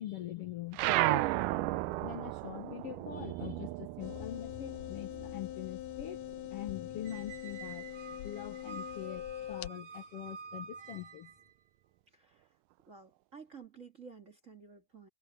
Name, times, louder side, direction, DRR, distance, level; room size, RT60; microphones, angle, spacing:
voice 1, 0.0-1.4 2.0-6.2 6.5-7.8 8.2-11.3, left 11 dB, 65° left, 1.6 m, -43 dB
sound 1, 0.7-5.6 5.9-7.4, right 17 dB, 85° right, 2.2 m, -34 dB
sound 2, 4.0-9.7, left 12 dB, 85° left, 2.4 m, -43 dB
Squeak, 7.0-11.5, right 6 dB, 65° right, 8.4 m, -49 dB
voice 2, 12.1-12.5 12.9-15.1, right 5 dB, 30° right, 2.0 m, -52 dB
omnidirectional pair, 3.7 m